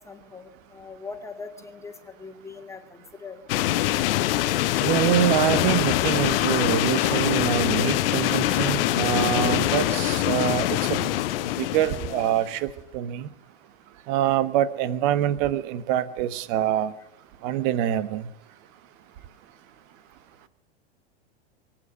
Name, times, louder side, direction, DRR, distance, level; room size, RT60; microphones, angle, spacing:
voice 1, 0.1-1.9 2.2-2.8 3.2-3.4, left 4 dB, 10° left, 5 dB, 2.1 m, -40 dB
sound 1, 3.5-12.5, left 14 dB, 60° left, 0.9 m, -24 dB
voice 2, 4.8-11.1 11.6-12.7 12.9-13.3 14.1-16.9 17.4-18.3, right 11 dB, 50° right, 14 dB, 1.2 m, -25 dB
23.0 x 9.0 x 6.6 m, 0.88 s
hypercardioid pair, 100°, 33 cm